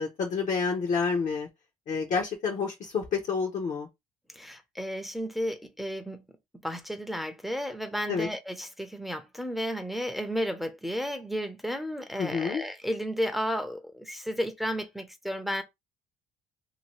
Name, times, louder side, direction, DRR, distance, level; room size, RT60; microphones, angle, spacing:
voice 1, 0.0-1.5 1.9-3.9 8.1-8.3 12.2-12.6, left 5 dB, 50° left, 0.8 m, -29 dB
voice 2, 4.3-6.2 6.6-15.6, equal, ahead, 0.6 m, -33 dB
2.8 x 2.6 x 3.0 m
cardioid pair, 110°, 17 cm